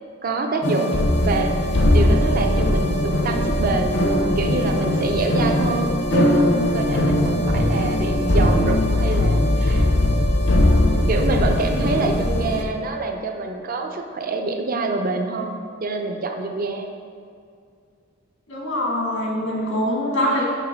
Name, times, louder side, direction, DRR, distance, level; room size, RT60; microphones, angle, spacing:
voice 1, 0.2-1.6 1.9-4.0 4.4-9.9 10.5-16.9, right 2 dB, 45° right, 4 dB, 0.6 m, -26 dB
sound 1, 0.6-12.6, left 1 dB, 60° left, 0.8 m, -20 dB
sound 2, 1.4-12.1, left 2 dB, 40° left, 0.4 m, -30 dB
voice 2, 18.5-20.4, equal, 85° left, -3 dB, 1.6 m, -23 dB
5.9 x 4.2 x 5.8 m, 2.3 s
head